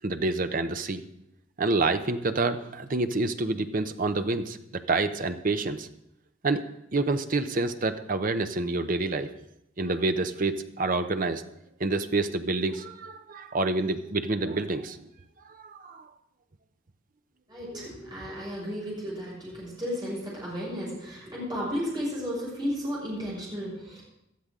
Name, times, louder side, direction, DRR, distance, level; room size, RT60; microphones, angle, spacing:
voice 1, 0.0-1.0 1.6-5.9 6.4-6.6 6.9-9.3 9.8-11.4 11.8-15.1 15.4-16.1 17.7-17.9, right 3 dB, 45° right, 9 dB, 0.8 m, -28 dB
voice 2, 17.5-24.0, equal, 20° right, -6 dB, 6.4 m, -33 dB
18.0 x 12.0 x 3.7 m, 0.82 s
head